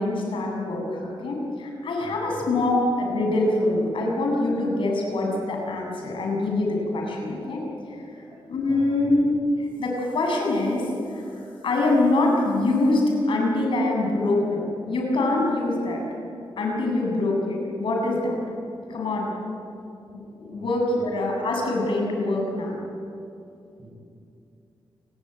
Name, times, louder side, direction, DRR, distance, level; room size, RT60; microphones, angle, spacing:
voice 1, 0.0-7.6 8.5-9.3 9.6-16.0 16.6-18.4 18.9-19.3 20.1-22.8, left 2 dB, 75° left, 0 dB, 7.8 m, -24 dB
voice 2, 2.0-2.5 8.1-8.4 8.7-9.1 20.5-20.7 20.9-21.0 23.8-23.9, right 2 dB, 45° right, -5 dB, 7.9 m, -44 dB
29.5 x 20.0 x 9.1 m, 2.6 s
wide cardioid pair, 125°, 9 cm